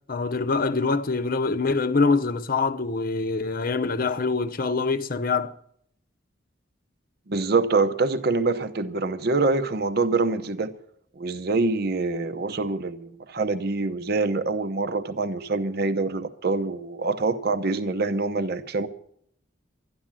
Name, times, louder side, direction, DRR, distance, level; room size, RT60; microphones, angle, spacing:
voice 1, 0.1-5.5, left 4 dB, 45° left, 0.7 m, -24 dB
voice 2, 7.3-10.7 11.2-18.9, right 3 dB, 55° right, 0.7 m, -25 dB
12.5 x 11.5 x 7.4 m
head